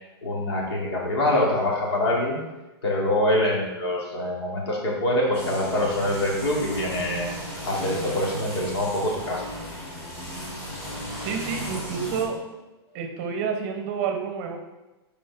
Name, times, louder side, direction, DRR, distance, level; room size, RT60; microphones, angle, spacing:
voice 1, 0.2-2.4 2.8-7.3 7.6-9.6, left 1 dB, 75° left, -3 dB, 2.7 m, -25 dB
sound 1, 5.3-12.2, equal, 20° left, 2.7 m, -35 dB
voice 2, 11.2-12.5 12.9-14.6, right 6 dB, 30° right, 4 dB, 0.8 m, -29 dB
9.1 x 5.1 x 3.6 m, 1.1 s
hypercardioid pair, 165°, 14 cm